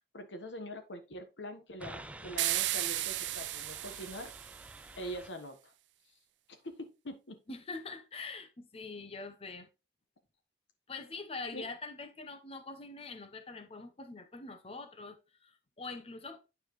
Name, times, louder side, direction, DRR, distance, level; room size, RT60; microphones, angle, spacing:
voice 1, 0.1-4.3 5.0-5.7 6.6-7.4 11.5-11.7, equal, 90° left, 1.3 m, -43 dB
sound 1, 1.8-5.3, right 2 dB, 10° right, 0.3 m, -49 dB
sound 2, 2.4-4.8, right 16 dB, 80° right, 0.4 m, -34 dB
voice 2, 7.5-9.7 10.9-16.4, left 3 dB, 35° left, 0.8 m, -44 dB
9.3 x 4.8 x 3.2 m
head